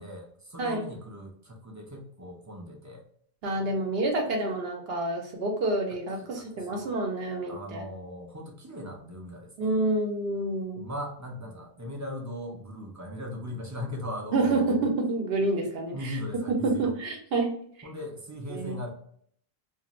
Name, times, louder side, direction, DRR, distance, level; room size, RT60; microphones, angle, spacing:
voice 1, 0.0-3.0 6.2-6.9 7.5-9.5 10.8-14.9 15.9-16.9 17.8-18.9, left 1 dB, 25° right, 1 dB, 0.4 m, -39 dB
voice 2, 3.4-7.8 9.6-10.9 14.3-16.2 16.6-17.9 18.5-18.8, right 2 dB, 75° right, 2 dB, 0.9 m, -28 dB
2.5 x 2.4 x 2.9 m, 0.63 s
omnidirectional pair, 1.0 m